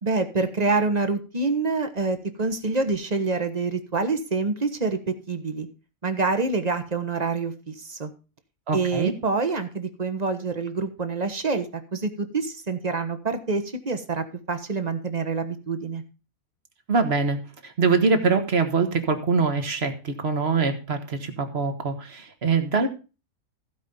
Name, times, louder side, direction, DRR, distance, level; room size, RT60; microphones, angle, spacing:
voice 1, 0.0-5.7 6.0-8.1 8.7-16.0, right 4 dB, 30° right, 8 dB, 1.2 m, -26 dB
voice 2, 8.7-9.1 16.9-22.9, right 4 dB, 45° right, 7 dB, 1.7 m, -24 dB
15.5 x 5.1 x 5.4 m, 0.33 s
omnidirectional pair, 1.5 m